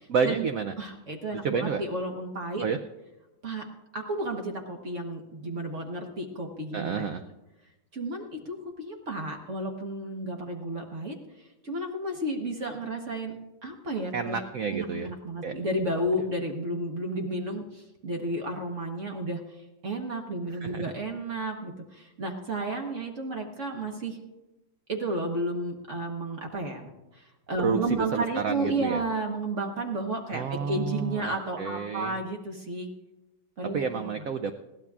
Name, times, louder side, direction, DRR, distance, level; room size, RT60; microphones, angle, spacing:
voice 1, 0.1-0.7 1.3-1.8 2.6-2.8 6.7-7.2 14.1-15.1 15.4-15.5 15.9-16.0 20.5-20.8 27.6-29.0 30.3-32.2 33.7-34.5, right 5 dB, 90° right, 8 dB, 0.7 m, -30 dB
voice 2, 0.8-2.7 3.4-3.6 3.9-7.1 7.9-13.4 13.6-14.4 14.7-19.4 19.8-24.2 24.9-32.9 33.6-34.0, right 1 dB, 45° right, 3 dB, 1.4 m, -32 dB
20.5 x 15.5 x 2.4 m, 1.0 s
omnidirectional pair, 2.1 m